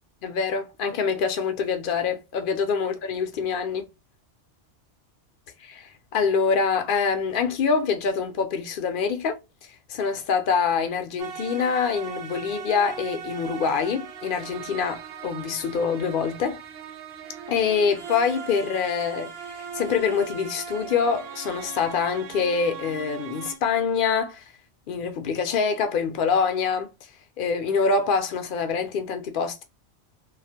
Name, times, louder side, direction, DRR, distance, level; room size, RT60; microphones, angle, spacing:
voice 1, 0.2-3.9 5.6-16.6 17.5-24.5 24.9-27.1 27.4-29.6, left 5 dB, 60° left, 0.6 m, -25 dB
sound 1, 11.2-23.6, right 7 dB, 60° right, 0.7 m, -39 dB
2.3 x 2.1 x 2.6 m
omnidirectional pair, 1.2 m